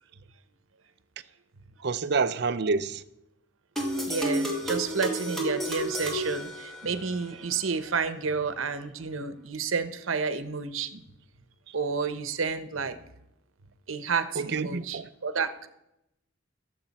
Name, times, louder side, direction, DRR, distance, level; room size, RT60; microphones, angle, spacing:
voice 1, 1.8-3.0 11.7-11.8 14.3-15.1, right 4 dB, 55° right, 0.5 m, -28 dB
sound 1, 3.8-7.2, equal, ahead, 2.2 m, -31 dB
voice 2, 4.0-11.0 11.7-13.0 13.9-15.7, right 5 dB, 85° right, 0.9 m, -30 dB
22.0 x 7.7 x 4.2 m
head